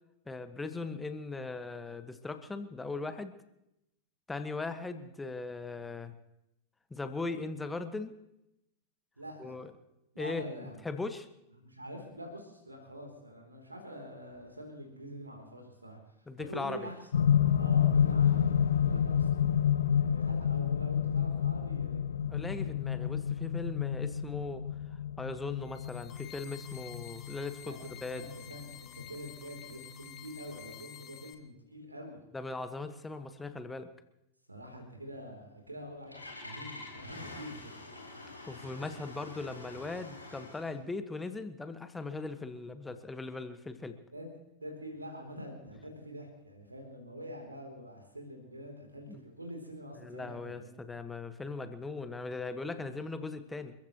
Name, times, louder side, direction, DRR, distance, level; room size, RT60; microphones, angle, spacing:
voice 1, 0.2-3.3 4.3-6.1 6.9-8.2 9.4-9.7 10.2-10.4 10.8-11.3 16.3-16.9 22.2-24.6 25.2-28.3 32.3-33.9 38.5-44.0 49.1-49.2 50.0-53.7, left 3 dB, 10° left, 9 dB, 1.4 m, -39 dB
voice 2, 9.2-9.5 10.1-10.8 11.6-16.0 16.4-17.0 17.6-19.4 19.9-22.0 27.6-27.8 28.1-32.2 34.5-37.8 44.1-44.2 44.6-50.7, equal, 80° right, 1 dB, 3.3 m, -45 dB
sound 1, 17.1-29.3 30.2-30.3, left 8 dB, 65° left, 0.5 m, -29 dB
sound 2, 25.6-31.3, left 10 dB, 35° left, 1.5 m, -51 dB
Engine starting, 35.6-40.8, left 2 dB, 85° left, 4.0 m, -47 dB
29.0 x 15.0 x 3.1 m, 0.85 s
figure-of-eight pair, 90°, 0 cm